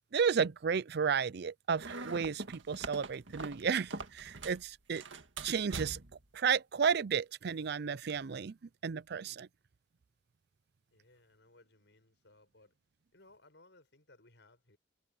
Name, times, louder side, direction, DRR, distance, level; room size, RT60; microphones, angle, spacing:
voice 1, 0.1-5.0 5.4-6.0 6.3-8.6 8.8-9.5, right 6 dB, 60° right, 0.5 m, -32 dB
sound 1, 1.8-4.6 4.9-6.2, right 3 dB, 90° right, 1.9 m, -43 dB
voice 2, 10.9-12.7 13.1-14.8, left 2 dB, 65° left, 7.5 m, -63 dB
head